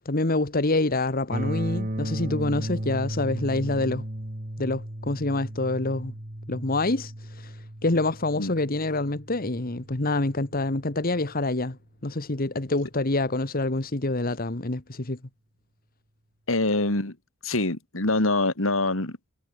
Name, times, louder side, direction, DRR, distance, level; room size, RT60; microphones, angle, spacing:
voice 1, 0.0-4.0 4.6-6.1 6.5-11.8 12.0-15.2, left 2 dB, 45° left, 1.6 m, -26 dB
sound 1, 1.3-11.2, right 1 dB, 40° right, 2.9 m, -35 dB
voice 2, 16.5-17.2 17.4-19.3, left 2 dB, 80° left, 3.1 m, -25 dB
head